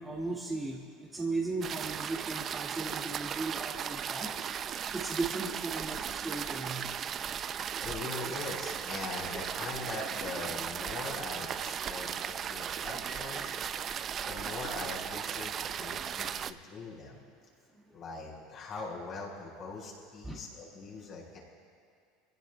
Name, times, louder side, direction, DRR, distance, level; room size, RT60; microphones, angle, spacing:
voice 1, 0.0-4.3 4.9-6.8 12.9-13.6 20.3-20.4, right 3 dB, 15° right, -5 dB, 2.1 m, -37 dB
sound 1, 1.6-16.5, right 8 dB, 40° right, 0.4 m, -36 dB
voice 2, 7.8-13.5 14.3-17.2 17.9-21.4, left 3 dB, 45° left, -3 dB, 4.8 m, -41 dB
26.0 x 16.5 x 2.3 m, 2.2 s
supercardioid pair, 100°, 0 cm